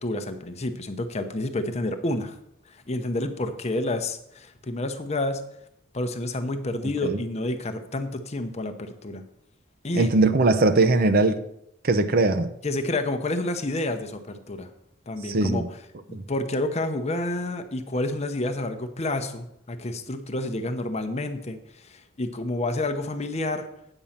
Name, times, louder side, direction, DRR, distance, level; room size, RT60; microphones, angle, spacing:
voice 1, 0.0-2.4 2.7-5.4 5.9-9.2 9.8-10.1 12.6-14.7 15.1-15.8 16.3-23.7, left 2 dB, 30° left, 8 dB, 0.8 m, -29 dB
voice 2, 9.9-11.4 11.8-12.5 15.2-15.6 16.1-16.2, right 3 dB, 45° right, 10 dB, 0.6 m, -20 dB
8.9 x 5.4 x 7.2 m, 0.77 s
head